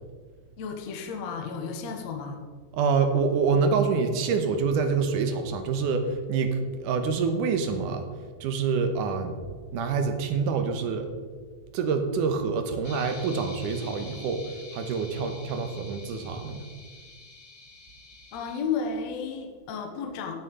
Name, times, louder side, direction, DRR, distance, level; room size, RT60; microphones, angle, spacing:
voice 1, 0.6-2.4 18.3-20.4, left 5 dB, 60° left, 3 dB, 2.1 m, -33 dB
voice 2, 2.7-8.1 8.4-9.4 9.7-11.1 11.7-14.4 14.7-16.7, right 5 dB, 70° right, 6 dB, 2.4 m, -26 dB
sound 1, 12.8-18.6, left 3 dB, 25° left, 1.5 m, -47 dB
17.0 x 6.4 x 5.4 m, 1.5 s
omnidirectional pair, 4.3 m